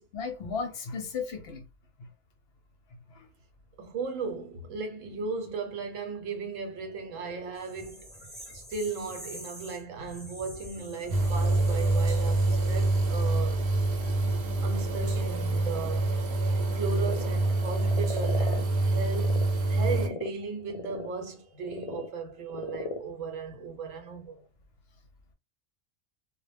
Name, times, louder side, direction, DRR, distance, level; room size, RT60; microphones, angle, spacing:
voice 1, 0.1-1.6 2.0-2.1 3.1-3.3, left 5 dB, 65° left, 0.7 m, -35 dB
voice 2, 3.8-8.1 8.5-13.7 14.0-14.1 14.6-19.4 19.7-24.4, right 5 dB, 90° right, 1.0 m, -36 dB
Frog, 6.6-19.4 19.8-24.5, left 3 dB, 90° left, 0.3 m, -43 dB
sound 1, 7.6-13.4, equal, 10° left, 0.7 m, -47 dB
sound 2, 11.1-20.1, right 2 dB, 60° right, 0.8 m, -26 dB
2.1 x 2.0 x 3.2 m
omnidirectional pair, 1.3 m